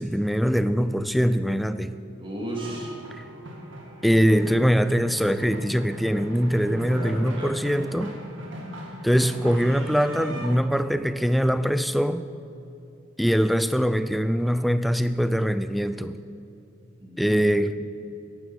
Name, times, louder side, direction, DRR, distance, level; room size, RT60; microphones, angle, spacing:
voice 1, 0.0-2.0 4.0-8.1 9.0-12.2 13.2-16.2 17.2-17.7, equal, ahead, 12 dB, 0.4 m, -22 dB
voice 2, 2.2-3.0 6.9-7.6 17.0-17.5 17.8-17.9, right 1 dB, 25° right, -2 dB, 2.5 m, -35 dB
sound 1, 2.6-10.5, equal, 70° right, 2.1 m, -39 dB
11.5 x 10.5 x 6.2 m, 2.7 s
head